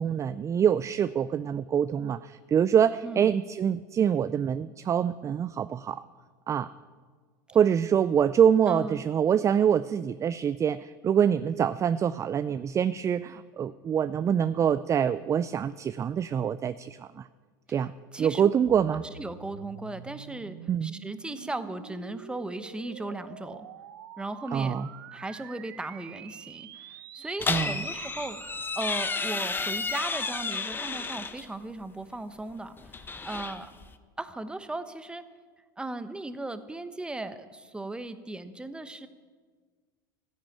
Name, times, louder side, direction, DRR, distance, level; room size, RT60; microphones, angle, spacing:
voice 1, 0.0-6.0 6.5-6.7 7.5-17.3 17.7-19.0 20.7-20.9 24.5-24.9 27.5-27.8, right 8 dB, 25° right, 15 dB, 0.4 m, -25 dB
voice 2, 8.7-9.0 17.7-17.9 18.1-18.5 18.9-23.7 24.2-24.8 25.1-33.7 34.2-35.2 35.8-39.1, right 2 dB, 10° right, 11 dB, 1.0 m, -37 dB
sound 1, 18.6-30.0, right 11 dB, 85° right, 0.8 m, -47 dB
sound 2, 27.4-31.5 32.8-33.9, left 4 dB, 20° left, 0.9 m, -32 dB
13.5 x 10.0 x 8.6 m, 1.5 s
hypercardioid pair, 95°, 11 cm